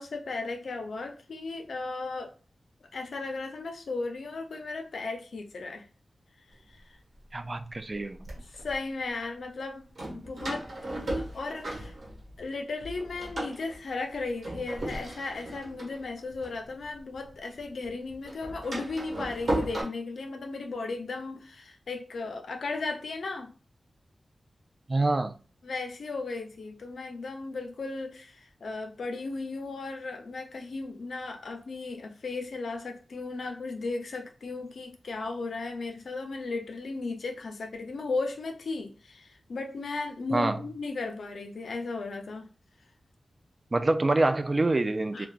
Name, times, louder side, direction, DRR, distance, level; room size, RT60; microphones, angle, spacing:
voice 1, 0.0-2.3 2.9-5.9 6.7-7.0 8.4-10.6 11.2-11.9 12.4-23.5 25.6-42.5 45.1-45.3, left 3 dB, 80° left, 0.5 m, -36 dB
Door, 6.8-6.9 7.6-8.8 10.0-12.5 12.8-17.3 17.6-19.8, right 1 dB, 75° right, 1.3 m, -36 dB
voice 2, 7.3-8.2 24.9-25.3 40.3-40.6 43.7-45.3, right 2 dB, 40° right, 0.3 m, -26 dB
3.7 x 2.2 x 2.3 m
cardioid pair, 55°, 0 cm